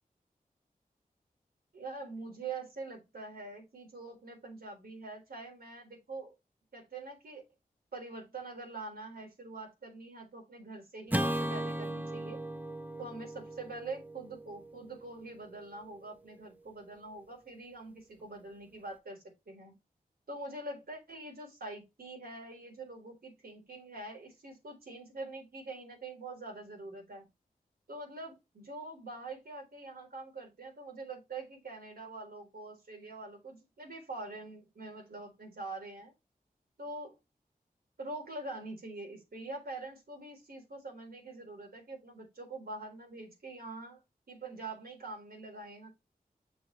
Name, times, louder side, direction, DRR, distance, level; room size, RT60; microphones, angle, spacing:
voice 1, 1.7-6.3 6.7-7.4 7.9-12.4 13.0-19.8 20.3-27.3 27.9-36.1 36.8-37.2 38.0-44.0 44.3-45.9, right 3 dB, 85° right, 4.0 m, -44 dB
Acoustic guitar / Strum, 11.1-15.5, right 1 dB, 10° right, 0.8 m, -37 dB
7.0 x 6.7 x 3.2 m
wide cardioid pair, 75°, 15 cm